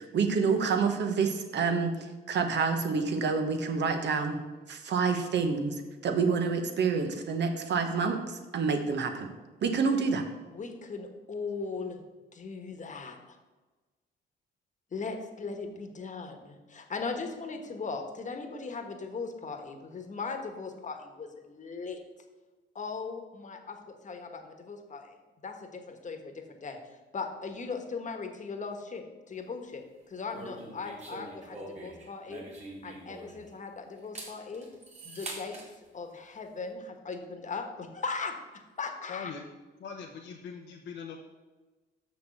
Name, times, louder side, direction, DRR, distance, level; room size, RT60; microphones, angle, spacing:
voice 1, 0.0-1.9 2.3-4.4 4.7-5.7 6.0-9.3 9.6-10.2, right 5 dB, 60° right, 6 dB, 1.3 m, -28 dB
voice 2, 10.5-12.0 12.3-13.4 14.9-22.0 22.7-26.8 27.1-32.4 32.8-34.7 35.0-35.6 35.9-38.3 38.8-39.3, left 4 dB, 40° left, 5 dB, 1.4 m, -38 dB
sound 1, 30.3-33.6 34.0-35.7, right 2 dB, 35° right, 2.7 m, -44 dB
voice 3, 39.1-39.4 39.8-41.2, left 6 dB, 65° left, 1 dB, 0.9 m, -41 dB
6.5 x 6.5 x 6.8 m, 1.2 s
cardioid pair, 90°, 20 cm